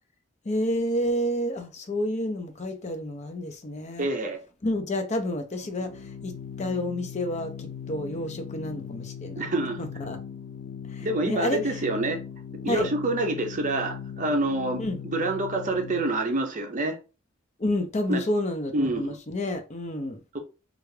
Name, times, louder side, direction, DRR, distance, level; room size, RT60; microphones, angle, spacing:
voice 1, 0.4-4.1 4.6-9.4 9.8-10.2 10.9-11.8 12.7-12.9 14.8-15.0 17.6-20.2, left 1 dB, 35° left, 0.6 m, -30 dB
voice 2, 4.0-4.4 9.4-9.8 11.0-12.2 12.6-17.0 18.1-18.2 18.7-19.2 20.3-20.4, right 2 dB, 40° right, 0.7 m, -27 dB
Organ, 5.6-16.4, left 8 dB, 80° left, 0.4 m, -39 dB
3.3 x 2.4 x 3.2 m
head